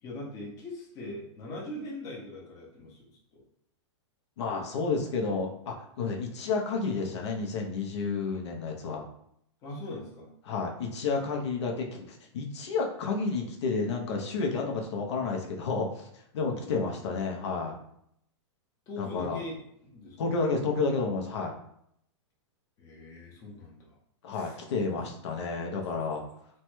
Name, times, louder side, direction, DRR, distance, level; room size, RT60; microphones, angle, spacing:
voice 1, 0.0-3.1 3.3-3.4 9.6-10.3 16.5-17.2 18.9-20.4 22.8-24.0 24.3-24.6, left 1 dB, 20° left, -3 dB, 0.6 m, -42 dB
voice 2, 4.4-9.0 10.5-17.7 19.0-19.4 20.2-21.5 24.2-26.2, left 4 dB, 70° left, 1 dB, 0.6 m, -31 dB
3.0 x 2.2 x 3.0 m, 0.72 s
supercardioid pair, 160°, 15 cm